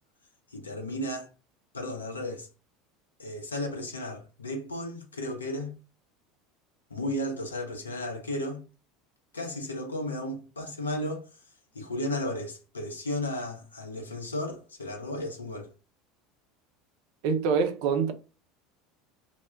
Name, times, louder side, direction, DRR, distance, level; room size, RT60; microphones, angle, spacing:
voice 1, 0.5-1.3 1.7-2.5 3.2-5.7 6.9-8.6 9.3-11.2 11.7-15.7, left 1 dB, 80° left, 0.6 m, -34 dB
voice 2, 17.2-18.1, right 6 dB, 55° right, 0.4 m, -25 dB
2.1 x 2.1 x 3.3 m
figure-of-eight pair, 70°, 0 cm